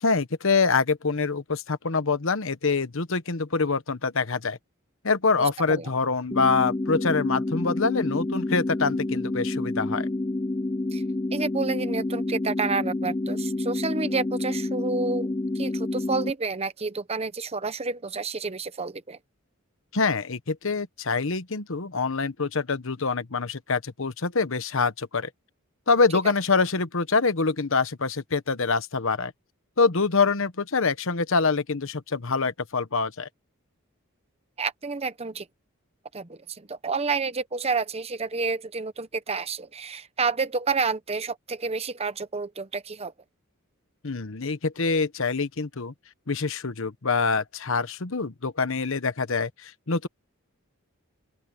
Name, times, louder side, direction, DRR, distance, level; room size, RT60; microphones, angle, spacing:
voice 1, 0.0-4.6 5.0-10.1 19.9-25.3 25.9-29.3 29.8-33.3 44.0-45.9 46.3-50.1, left 4 dB, 65° left, 1.1 m, -25 dB
voice 2, 5.4-5.9 10.9-11.0 11.3-15.3 15.5-19.2 34.6-35.5 36.1-43.1, right 4 dB, 30° right, 0.9 m, -29 dB
sound 1, 6.3-16.3, left 2 dB, 20° left, 0.6 m, -28 dB
open air
head